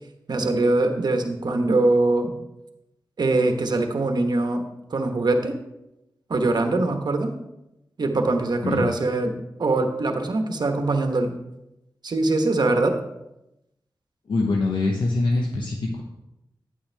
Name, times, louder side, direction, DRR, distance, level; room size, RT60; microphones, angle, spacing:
voice 1, 0.3-2.3 3.2-4.6 4.9-5.5 6.3-7.3 8.0-11.3 12.0-12.9, right 2 dB, 60° right, 5 dB, 1.2 m, -22 dB
voice 2, 14.3-16.0, left 3 dB, 80° left, 0 dB, 1.0 m, -24 dB
9.6 x 8.7 x 3.4 m, 0.89 s
wide cardioid pair, 80°, 8 cm